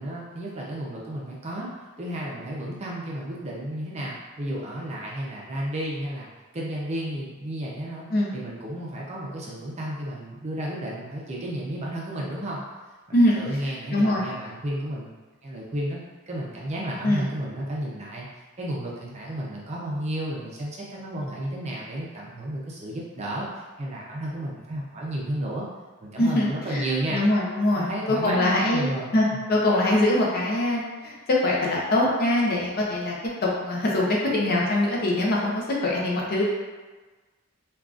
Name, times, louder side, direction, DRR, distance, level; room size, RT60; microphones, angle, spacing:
voice 1, 0.0-1.7 2.0-8.1 8.3-12.6 13.3-15.1 15.4-16.0 16.3-18.3 18.6-23.5 23.8-25.7 26.0-27.2 27.8-29.4, right 1 dB, 30° right, -4 dB, 0.5 m, -32 dB
voice 2, 13.9-14.3 17.0-17.2 26.2-26.8 27.1-33.2 33.4-36.4, left 1 dB, 45° left, -3 dB, 0.5 m, -23 dB
3.6 x 2.3 x 2.4 m, 1.3 s
head